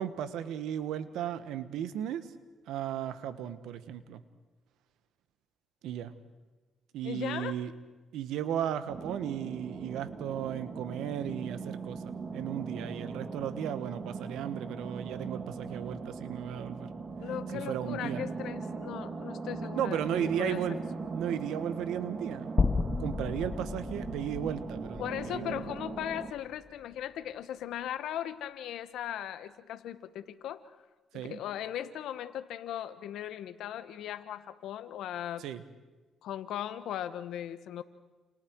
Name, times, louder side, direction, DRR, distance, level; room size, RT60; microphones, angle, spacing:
voice 1, 0.0-2.3 2.7-4.2 5.8-6.1 6.9-7.7 8.1-16.9 17.5-18.2 19.7-20.8 21.1-22.5 23.0-25.6 31.1-31.4 35.4-35.6, right 10 dB, 85° right, 12 dB, 1.4 m, -35 dB
voice 2, 7.0-7.5 17.2-20.6 25.0-30.6 31.1-35.4 36.2-37.8, left 11 dB, 80° left, 12 dB, 1.4 m, -38 dB
sound 1, 8.9-26.3, right 4 dB, 40° right, 2.4 m, -40 dB
sound 2, 22.6-26.8, left 4 dB, 30° left, 0.9 m, -33 dB
29.0 x 28.5 x 4.8 m, 1.2 s
cardioid pair, 90°, 0 cm